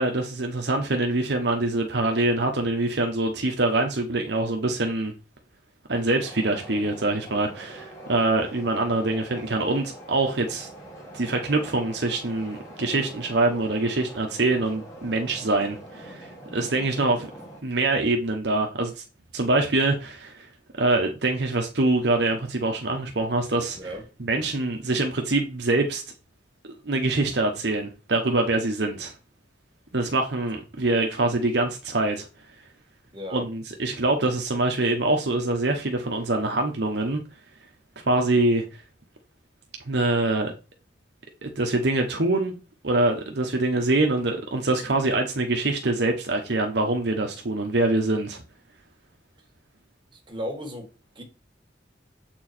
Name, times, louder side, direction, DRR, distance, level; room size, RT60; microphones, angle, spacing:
voice 1, 0.0-5.1 5.9-10.7 11.1-17.3 17.6-19.0 19.3-20.5 20.7-23.8 24.2-26.0 26.6-29.1 29.9-32.3 33.3-37.2 38.1-38.6 39.9-40.5 41.4-42.5 42.8-48.4, right 2 dB, 65° right, 1.1 m, -24 dB
sound 1, 6.2-17.6, right 1 dB, 15° left, 2.4 m, -43 dB
voice 2, 33.1-33.5 50.1-50.9 51.2-51.3, equal, 25° right, 2.0 m, -35 dB
7.6 x 4.6 x 4.4 m
head